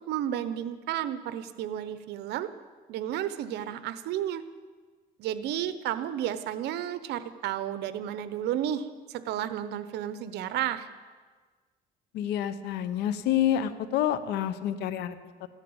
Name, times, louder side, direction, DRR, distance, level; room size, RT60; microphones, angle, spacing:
voice 1, 0.1-2.5 2.9-4.4 5.2-10.9, right 11 dB, 80° right, 13 dB, 1.0 m, -32 dB
voice 2, 12.1-15.5, left 10 dB, 85° left, 13 dB, 1.0 m, -28 dB
15.0 x 10.5 x 8.8 m, 1.5 s
cardioid pair, 110°, 17 cm